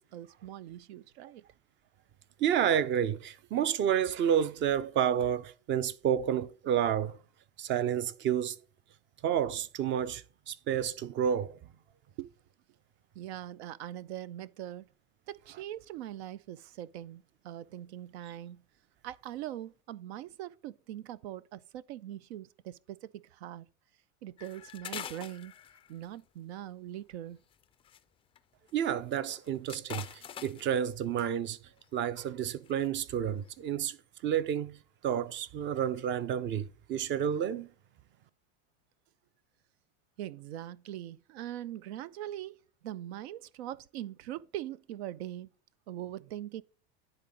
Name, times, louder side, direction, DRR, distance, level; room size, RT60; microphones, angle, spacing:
voice 1, 0.0-1.4 12.2-12.3 13.2-14.9 15.3-18.6 19.0-23.7 24.2-25.5 25.9-27.4 40.2-42.6 42.8-45.5 45.9-46.6, right 12 dB, 85° right, 0.5 m, -42 dB
voice 2, 2.4-7.2 7.6-8.6 9.2-11.6 28.7-31.6 31.9-34.0 34.2-34.8 35.0-37.7, right 9 dB, 35° right, 0.6 m, -30 dB
sound 1, 24.4-26.2 27.5-28.0 28.4-28.5 28.7-28.8 29.2-30.8 31.8-32.0 32.5-32.9 33.3-33.5, left 10 dB, 20° left, 0.3 m, -44 dB
10.0 x 3.9 x 3.7 m
supercardioid pair, 120°, 32 cm